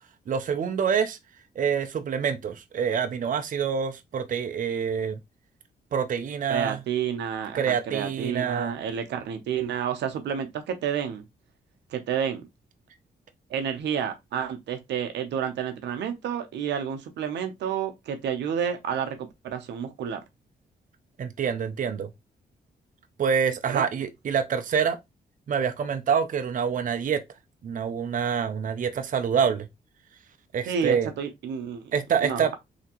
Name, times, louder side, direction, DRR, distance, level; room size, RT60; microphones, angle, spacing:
voice 1, 0.3-1.2 1.6-5.2 5.9-6.8 7.5-8.7 21.2-22.1 23.2-25.0 25.5-27.2 27.6-29.7 30.5-31.1 31.9-32.5, right 7 dB, 50° right, 0.5 m, -26 dB
voice 2, 6.5-11.2 11.9-12.4 13.5-19.2 19.4-20.2 23.7-23.9 30.7-31.9 32.2-32.6, right 8 dB, 90° right, 0.7 m, -30 dB
3.3 x 2.8 x 2.9 m
cardioid pair, 75°, 18 cm